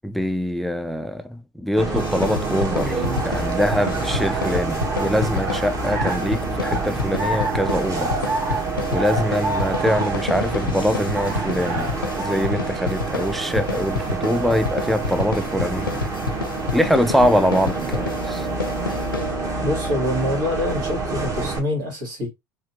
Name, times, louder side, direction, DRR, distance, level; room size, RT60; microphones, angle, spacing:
voice 1, 0.0-8.1 8.9-15.9 16.7-18.5, equal, ahead, 0.4 m, -23 dB
Bus, 1.8-21.6, right 3 dB, 30° right, 1.4 m, -27 dB
sound 1, 2.0-19.7, left 4 dB, 85° left, 0.7 m, -30 dB
sound 2, 2.8-12.6, right 2 dB, 50° right, 1.8 m, -31 dB
voice 2, 19.6-22.3, left 1 dB, 70° right, 2.3 m, -25 dB
4.8 x 2.8 x 2.8 m
figure-of-eight pair, 70°, 11 cm